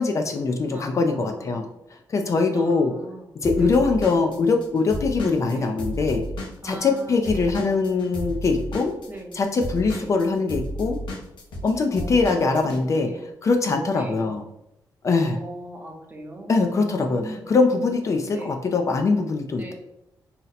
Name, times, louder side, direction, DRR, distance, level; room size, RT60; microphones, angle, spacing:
voice 1, 0.0-1.6 2.1-2.9 3.4-6.2 6.6-8.9 9.3-11.0 11.6-14.4 15.0-15.4 16.5-19.7, left 4 dB, 40° left, 4 dB, 0.3 m, -22 dB
voice 2, 0.7-1.6 2.5-4.0 5.5-5.8 6.6-7.6 9.1-9.4 9.9-10.2 11.9-12.6 13.0-13.2 13.9-14.3 15.3-17.5 18.3-18.6 19.5-19.7, right 1 dB, 20° right, 1 dB, 0.6 m, -40 dB
Drum kit / Drum, 3.4-7.0 7.3-12.8, equal, 90° left, 0.8 m, -32 dB
2.7 x 2.0 x 3.9 m, 0.83 s
wide cardioid pair, 125°, 8 cm